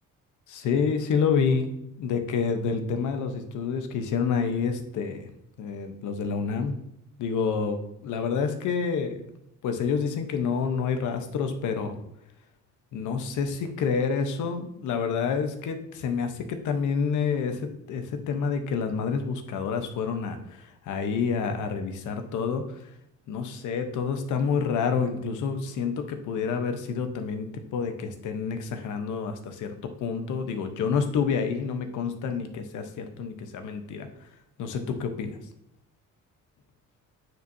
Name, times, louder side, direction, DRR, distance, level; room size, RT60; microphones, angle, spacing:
voice 1, 0.5-1.7 2.0-5.3 5.6-6.8 7.2-7.8 8.0-9.2 9.6-12.0 12.9-22.6 23.3-29.7 30.0-34.1 34.6-35.4, left 6 dB, 80° left, 7 dB, 1.0 m, -28 dB
9.1 x 4.6 x 2.7 m, 0.78 s
cardioid pair, 90°, 30 cm